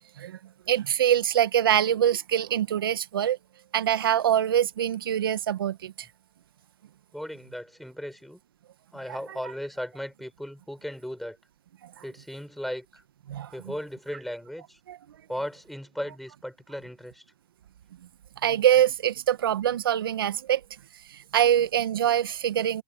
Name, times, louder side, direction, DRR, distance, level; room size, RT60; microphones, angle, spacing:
voice 1, 0.7-3.4 3.7-6.1 13.3-13.5 14.9-15.0 18.4-20.6 21.1-22.8, right 10 dB, 85° right, 1.7 m, -24 dB
voice 2, 7.1-8.4 8.9-11.4 12.0-13.0 13.5-14.8 15.3-17.2 21.5-21.7, equal, ahead, 6.2 m, -36 dB
hypercardioid pair, 125°, 12 cm